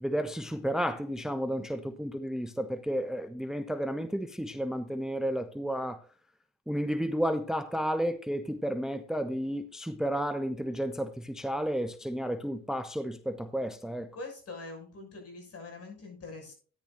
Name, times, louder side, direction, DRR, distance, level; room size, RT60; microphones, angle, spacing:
voice 1, 0.0-6.0 6.7-14.1, equal, ahead, 0.7 m, -32 dB
voice 2, 14.1-16.5, left 3 dB, 50° left, 6.4 m, -43 dB
14.0 x 10.0 x 2.6 m
cardioid pair, 90°, 30 cm